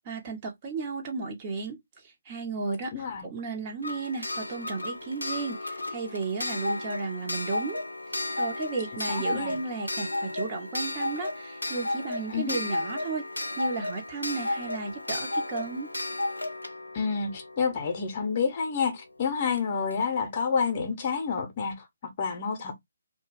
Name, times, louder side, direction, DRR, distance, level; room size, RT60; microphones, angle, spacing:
voice 1, 0.1-1.8 2.3-2.9 3.2-7.8 8.4-13.3 13.6-15.9, right 4 dB, 30° right, 0.8 m, -34 dB
voice 2, 2.9-3.3 9.1-9.6 12.3-12.6 16.9-22.7, left 5 dB, 35° left, 0.7 m, -29 dB
Clock, 3.8-18.4 19.6-19.7 19.9-20.0, left 2 dB, 80° left, 0.4 m, -33 dB
2.3 x 2.2 x 3.2 m
figure-of-eight pair, 140°, 0 cm